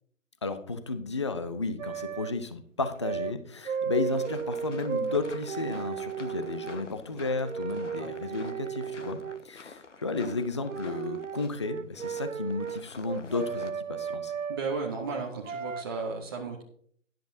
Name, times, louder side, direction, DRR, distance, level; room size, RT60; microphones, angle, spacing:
voice 1, 0.4-14.3, left 3 dB, 25° left, 10 dB, 0.5 m, -33 dB
sound 1, 1.8-2.3 3.0-3.3 3.6-6.8 7.4-9.4 10.1-10.4 10.7-14.6 15.4-15.8, right 7 dB, 75° right, 0.6 m, -35 dB
sound 2, 4.0-13.7, left 4 dB, 65° left, 1.2 m, -49 dB
voice 2, 14.5-16.6, right 4 dB, 20° right, -2 dB, 0.7 m, -34 dB
13.0 x 10.5 x 2.6 m, 0.62 s
figure-of-eight pair, 140°, 39 cm